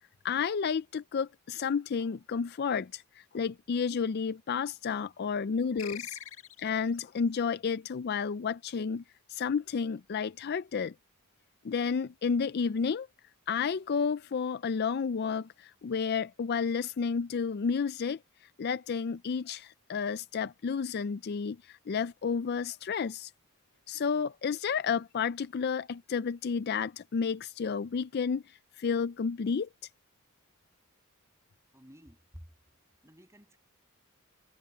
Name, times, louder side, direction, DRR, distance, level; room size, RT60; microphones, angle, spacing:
voice 1, 0.2-6.2 6.6-9.0 9.3-10.9 11.6-13.1 13.5-18.2 18.6-23.3 23.9-28.4 28.8-29.7, left 6 dB, 45° left, 0.4 m, -31 dB
sound 1, 5.8-7.0, left 9 dB, 65° left, 2.2 m, -43 dB
voice 2, 31.7-32.5 33.0-33.6, equal, 15° right, 7.3 m, -52 dB
head